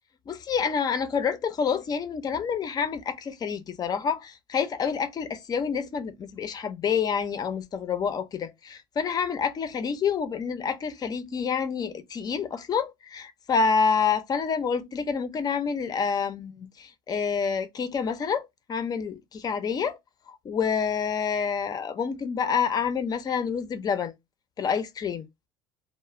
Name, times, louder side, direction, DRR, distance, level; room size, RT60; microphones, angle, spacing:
voice 1, 0.3-20.0 20.3-24.1 24.6-25.2, left 6 dB, 35° left, 0.5 m, -28 dB
2.3 x 2.0 x 3.0 m
supercardioid pair, 100°, 11 cm